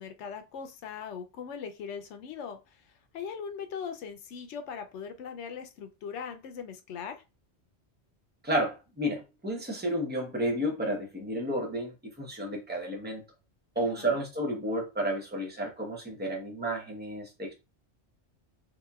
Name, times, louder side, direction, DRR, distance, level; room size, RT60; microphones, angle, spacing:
voice 1, 0.0-2.6 3.1-7.2 13.8-14.2, left 6 dB, 85° left, 0.9 m, -40 dB
voice 2, 8.4-13.2 13.7-17.5, right 1 dB, 10° right, 0.8 m, -31 dB
4.0 x 2.9 x 2.3 m
omnidirectional pair, 1.1 m